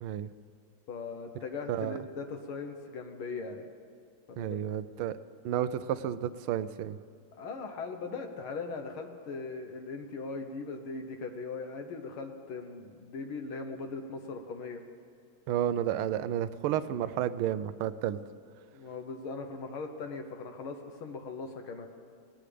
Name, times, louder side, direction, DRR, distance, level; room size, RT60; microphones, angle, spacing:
voice 1, 0.0-0.3 1.7-2.0 4.4-5.2 5.4-7.0 15.5-18.2, right 10 dB, 90° right, 13 dB, 1.5 m, -31 dB
voice 2, 0.9-3.6 4.3-4.6 7.4-14.8 18.7-21.9, left 4 dB, 80° left, 5 dB, 1.8 m, -39 dB
19.5 x 18.5 x 3.4 m, 2.3 s
omnidirectional pair, 2.3 m